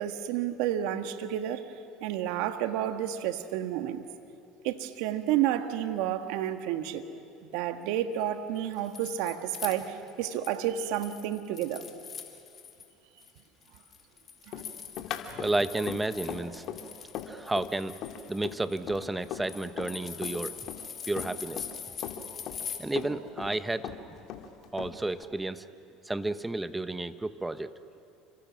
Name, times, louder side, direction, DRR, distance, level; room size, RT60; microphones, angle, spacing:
voice 1, 0.0-1.6 2.0-4.0 4.6-7.0 7.4-11.9 14.5-14.6, right 11 dB, 70° right, 1.6 m, -30 dB
sound 1, 8.6-10.6 10.9-12.9 13.2-22.8, left 7 dB, 40° left, 3.3 m, -43 dB
Run, 14.5-20.0 20.2-21.8 22.0-23.6 23.8-25.2, left 9 dB, 60° left, 2.3 m, -39 dB
voice 2, 15.4-16.6 17.3-18.0 18.3-20.6 21.0-21.7 22.8-23.9 24.7-25.7 26.0-27.7, right 2 dB, 10° right, 1.1 m, -31 dB
29.0 x 25.5 x 6.4 m
supercardioid pair, 85°, 0 cm